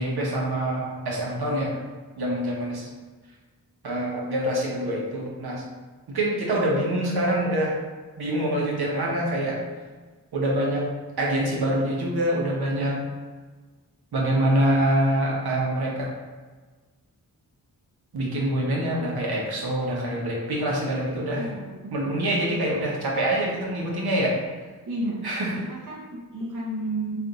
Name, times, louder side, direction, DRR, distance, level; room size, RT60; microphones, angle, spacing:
voice 1, 0.0-1.8 2.2-2.9 3.8-5.6 6.1-7.8 8.2-9.6 10.3-10.8 11.2-13.0 14.1-16.1 18.1-21.5 21.9-24.4 25.2-25.5, right 1 dB, 75° right, -3 dB, 0.9 m, -25 dB
voice 2, 21.3-23.1 24.9-25.3 25.6-27.2, right 1 dB, 55° right, -3 dB, 0.7 m, -33 dB
3.3 x 2.5 x 3.8 m, 1.4 s
wide cardioid pair, 80°, 38 cm